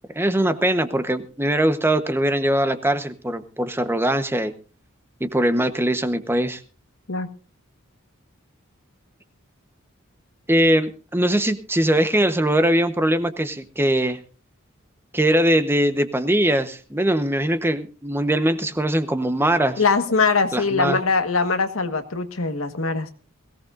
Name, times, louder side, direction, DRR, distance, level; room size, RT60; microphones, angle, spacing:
voice 1, 0.1-4.5 5.2-6.6 10.5-14.2 15.1-19.8 20.5-21.0, right 1 dB, 10° right, 9 dB, 1.0 m, -21 dB
voice 2, 19.8-23.1, left 4 dB, 80° left, 8 dB, 1.5 m, -22 dB
21.5 x 17.0 x 2.6 m, 0.36 s
head